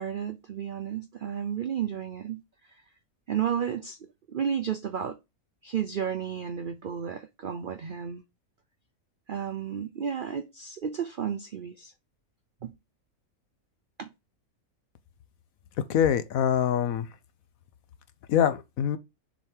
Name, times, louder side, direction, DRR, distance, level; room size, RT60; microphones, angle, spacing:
voice 1, 0.0-2.4 3.3-4.0 4.3-5.2 5.6-8.2 9.3-11.9 12.6-12.7 14.0-14.1, right 8 dB, 70° right, 0.5 m, -32 dB
voice 2, 15.9-17.1 18.3-19.0, left 9 dB, 70° left, 1.2 m, -24 dB
6.6 x 3.6 x 4.5 m
omnidirectional pair, 1.5 m